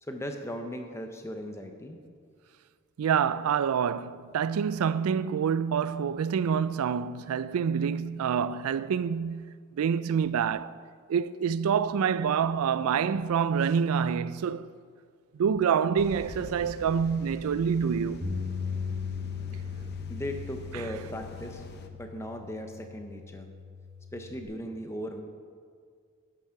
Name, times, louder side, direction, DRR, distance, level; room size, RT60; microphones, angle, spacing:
voice 1, 0.0-2.0 20.1-21.6 21.9-23.5 24.1-25.2, equal, 10° left, 0.7 m, -38 dB
voice 2, 3.0-10.8 11.1-14.7 15.3-18.3 20.7-20.8, right 7 dB, 80° right, 0.3 m, -27 dB
sound 1, 16.0-21.9, left 2 dB, 50° left, 0.6 m, -45 dB
Bass guitar, 18.2-24.5, left 5 dB, 65° right, 2.1 m, -38 dB
10.5 x 6.0 x 5.7 m
head